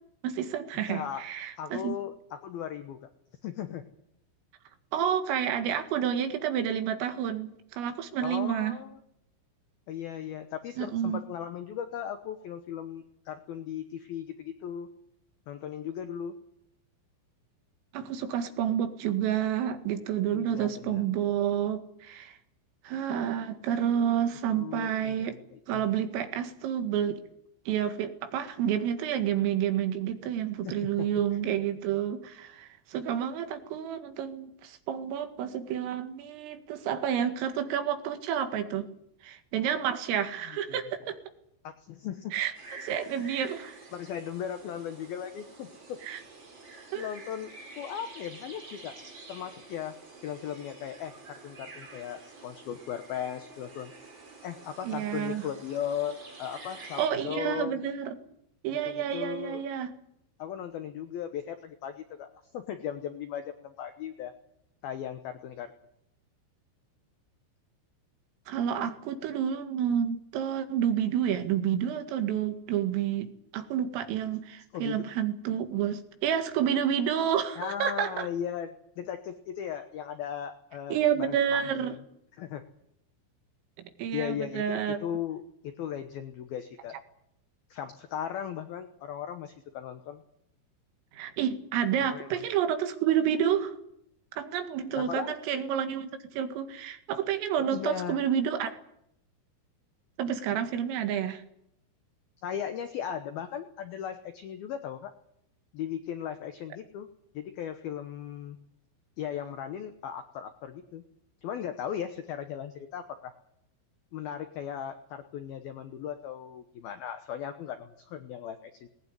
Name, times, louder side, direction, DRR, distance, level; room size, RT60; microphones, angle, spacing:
voice 1, 0.2-2.0 4.9-8.8 10.8-11.2 17.9-22.4 22.8-25.4 25.7-27.2 27.7-38.9 39.2-41.2 42.3-42.5 42.8-43.8 46.0-46.2 46.9-47.1 54.8-55.5 57.0-58.2 58.6-59.9 68.5-78.3 80.9-82.0 83.8-85.0 91.1-93.7 94.4-98.7 100.2-101.4, right 9 dB, 75° right, 7 dB, 4.5 m, -29 dB
voice 2, 0.9-1.2 1.6-3.0 3.4-3.9 8.2-9.0 9.9-14.9 15.5-16.3 20.3-21.0 24.5-25.8 30.6-31.1 31.3-31.4 40.7-40.8 41.6-42.3 43.9-46.0 47.0-48.9 49.3-49.9 50.2-53.9 54.4-57.8 58.9-59.6 60.4-62.3 62.5-64.3 64.8-65.7 74.7-75.1 77.6-82.0 82.4-82.6 84.1-87.0 87.7-90.2 92.1-92.4 94.9-95.4 97.7-98.2 102.4-105.1 105.7-107.1 107.3-108.6 109.2-111.0 111.4-113.3 114.1-118.9, left 9 dB, 80° left, 8 dB, 2.2 m, -37 dB
sound 1, 42.5-57.1, right 3 dB, 25° right, 4.1 m, -49 dB
19.5 x 18.5 x 9.8 m, 0.76 s
omnidirectional pair, 6.0 m